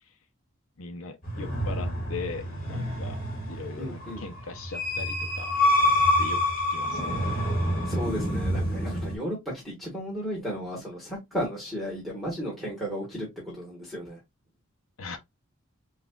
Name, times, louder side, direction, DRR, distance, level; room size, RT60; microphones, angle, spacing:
voice 1, 0.8-3.2 3.5-5.6 6.2-6.4 6.7-7.3 15.0-15.2, left 4 dB, 75° left, 0.7 m, -39 dB
sound 1, 1.2-9.2, left 1 dB, 40° left, 1.9 m, -27 dB
voice 2, 3.8-4.3 7.8-13.3 13.5-14.2, equal, ahead, 1.5 m, -34 dB
5.7 x 2.4 x 2.3 m
head